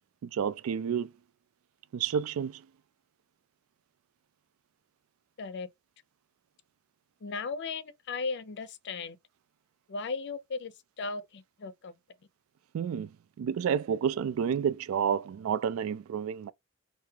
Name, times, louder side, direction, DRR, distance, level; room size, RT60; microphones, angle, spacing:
voice 1, 0.2-1.1 1.9-2.6 12.7-13.1 13.4-16.5, right 7 dB, 85° right, 0.3 m, -30 dB
voice 2, 7.2-9.2 9.9-11.9, left 4 dB, 55° left, 0.5 m, -36 dB
3.4 x 2.6 x 3.2 m
head